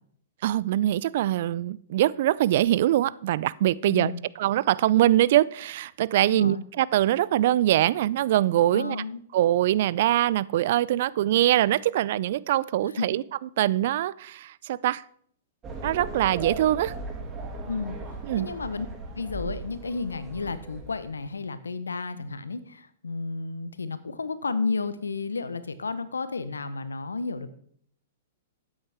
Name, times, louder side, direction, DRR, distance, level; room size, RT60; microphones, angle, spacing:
voice 1, 0.4-4.1 4.4-9.0 9.3-13.2 13.6-15.0 15.8-16.9 18.3-18.5, right 13 dB, 55° right, 0.4 m, -23 dB
voice 2, 3.8-4.2 6.3-6.6 8.7-9.2 12.8-13.1 17.7-18.0 18.4-18.9 19.1-27.5, left 4 dB, 85° left, 0.9 m, -32 dB
sound 1, 15.6-21.3, right 2 dB, 25° right, 2.2 m, -38 dB
13.0 x 8.8 x 3.5 m
hypercardioid pair, 115°, 0 cm